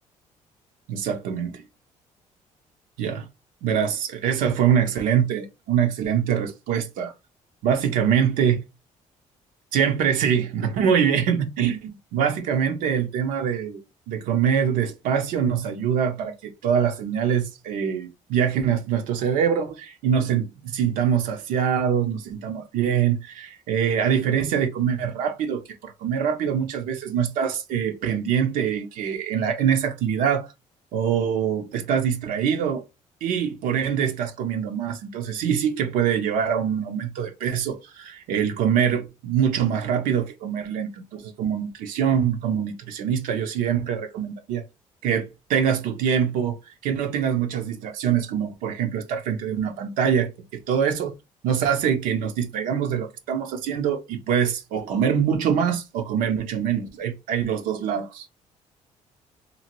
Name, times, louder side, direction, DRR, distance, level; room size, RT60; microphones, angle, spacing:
voice 1, 0.9-1.7 3.0-3.3 3.6-7.1 7.6-8.5 9.7-13.8 14.1-30.5 30.9-32.8 33.2-44.6 45.0-46.6 46.8-51.1 51.4-58.3, right 8 dB, 85° right, 0.5 m, -24 dB
2.7 x 2.5 x 2.9 m
cardioid pair, 85°, 14 cm